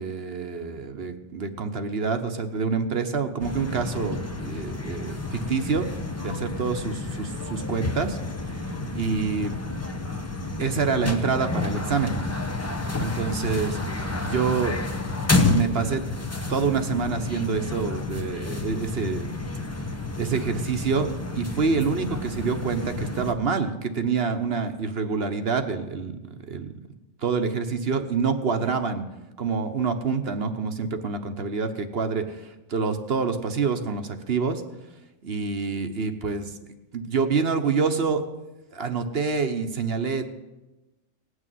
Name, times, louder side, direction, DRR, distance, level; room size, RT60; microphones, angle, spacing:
voice 1, 0.0-5.9 6.2-8.2 8.9-9.6 10.6-12.2 13.0-13.8 14.2-14.8 15.5-16.0 16.5-19.3 20.2-26.2 26.5-26.7 27.2-29.0 29.4-34.6 35.2-36.5 36.9-38.3 38.7-40.3, right 5 dB, 55° right, 7 dB, 1.2 m, -27 dB
sound 1, 3.4-23.3, left 3 dB, 15° left, 0.9 m, -30 dB
18.0 x 6.4 x 9.2 m, 1.0 s
omnidirectional pair, 1.3 m